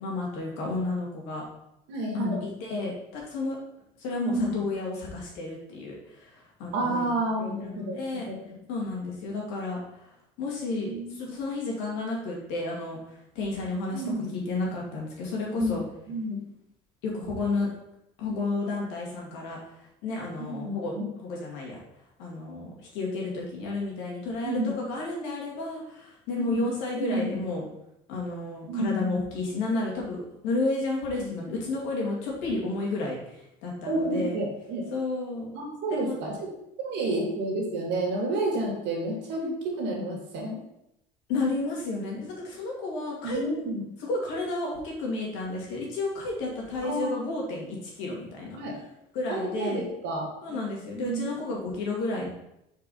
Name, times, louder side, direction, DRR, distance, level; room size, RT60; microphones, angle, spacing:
voice 1, 0.0-1.4 2.1-3.6 4.0-8.3 8.7-14.0 14.3-15.8 17.0-17.7 18.2-20.9 21.2-21.8 22.2-27.7 28.1-34.4 34.9-35.5 35.9-36.1 39.3-39.5 41.3-43.4 44.1-48.6 49.1-49.8 50.4-52.3, left 2 dB, 85° left, -2 dB, 2.2 m, -32 dB
voice 2, 1.9-2.4 4.2-4.6 6.7-8.0 8.3-8.4 10.7-11.2 13.9-14.4 15.6-15.8 16.1-16.4 20.4-20.8 24.4-24.7 26.3-26.5 26.9-27.4 28.7-29.2 31.2-31.3 33.9-34.9 35.5-36.5 36.8-40.6 43.2-43.8 46.8-47.1 48.6-48.8 49.3-50.7 50.9-51.3, right 2 dB, 75° right, 0 dB, 2.2 m, -30 dB
4.7 x 4.6 x 5.4 m, 0.83 s
supercardioid pair, 95°, 19 cm